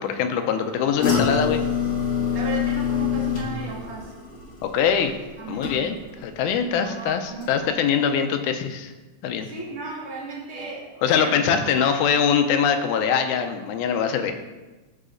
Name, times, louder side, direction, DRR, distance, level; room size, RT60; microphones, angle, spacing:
voice 1, 0.0-1.6 4.7-5.1 5.5-6.0 6.2-8.9 9.2-9.5 11.0-14.3, left 7 dB, 85° left, 7 dB, 2.1 m, -22 dB
sound 1, 1.0-6.2 6.5-7.0 7.4-7.5, left 7 dB, 40° left, 1.6 m, -26 dB
voice 2, 2.3-4.1 5.4-5.9 6.7-8.3 9.4-11.9, right 2 dB, 35° right, -5 dB, 1.2 m, -35 dB
13.0 x 4.9 x 2.5 m, 1.2 s
omnidirectional pair, 3.5 m